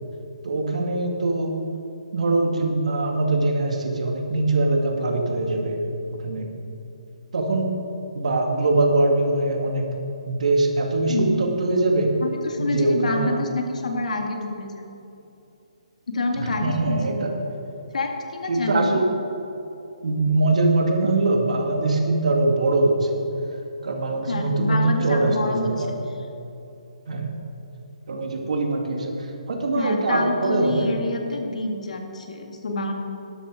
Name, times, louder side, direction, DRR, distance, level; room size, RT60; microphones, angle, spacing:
voice 1, 0.4-1.6 2.1-5.9 6.2-6.5 7.3-7.7 8.1-9.8 10.3-12.1 12.6-13.3 16.3-17.3 18.5-19.0 20.0-23.2 23.8-26.0 27.1-27.3 28.1-30.9, right 2 dB, 65° right, 2 dB, 2.2 m, -22 dB
voice 2, 11.1-11.4 12.2-14.9 16.1-17.2 17.9-19.0 24.3-26.0 29.7-32.9, left 2 dB, 75° left, 3 dB, 2.1 m, -27 dB
12.5 x 12.0 x 5.0 m, 2.8 s
hypercardioid pair, 165°, 4 cm